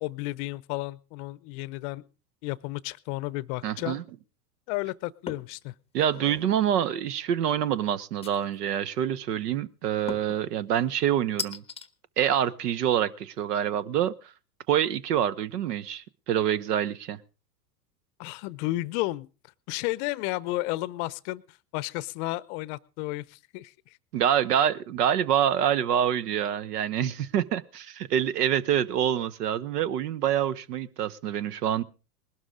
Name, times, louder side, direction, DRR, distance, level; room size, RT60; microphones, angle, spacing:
voice 1, 0.0-2.0 2.4-4.0 4.7-5.7 18.2-19.3 19.7-24.0, left 19 dB, 45° left, 21 dB, 0.7 m, -32 dB
voice 2, 3.6-4.0 5.9-11.6 12.2-14.1 14.7-17.2 24.1-31.8, right 10 dB, 70° right, 19 dB, 1.0 m, -26 dB
sound 1, 5.3-5.6 6.0-6.5 8.2-8.8 10.1-10.4 11.4-11.9, left 5 dB, 10° left, 0.8 m, -37 dB
20.0 x 12.5 x 3.7 m, 0.33 s
hypercardioid pair, 95°, 49 cm